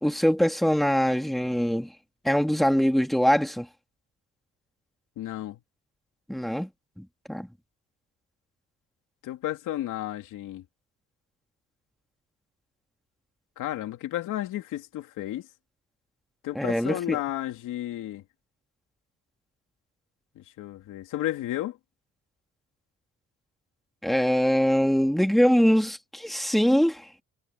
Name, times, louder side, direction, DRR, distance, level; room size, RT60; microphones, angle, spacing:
voice 1, 0.0-1.9 2.2-3.7 6.3-6.7 7.0-7.5 16.6-17.2 24.0-27.1, equal, ahead, 2.3 m, -23 dB
voice 2, 5.2-5.6 9.2-10.6 13.6-15.5 16.4-18.2 20.3-21.8, left 13 dB, 85° left, 2.9 m, -33 dB
cardioid pair, 90°, 30 cm